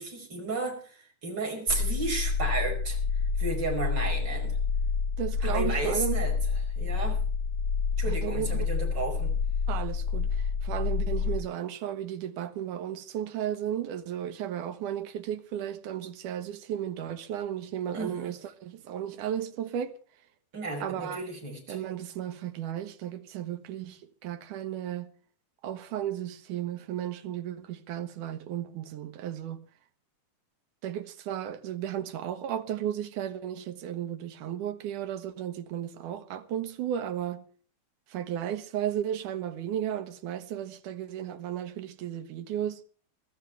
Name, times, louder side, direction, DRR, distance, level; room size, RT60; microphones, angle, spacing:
voice 1, 0.0-3.0 3.4-4.6 5.4-6.3 6.8-7.2 8.0-9.3 17.9-18.3 20.5-21.8, right 3 dB, 35° right, 5.8 m, -33 dB
sound 1, 1.7-11.4, left 5 dB, 90° left, 4.3 m, -28 dB
voice 2, 5.2-6.2 8.1-8.7 9.7-19.9 20.8-21.2 21.7-25.1 25.6-29.6 30.8-37.4 38.1-42.8, right 10 dB, 85° right, 2.7 m, -34 dB
24.0 x 14.0 x 3.3 m
omnidirectional pair, 3.5 m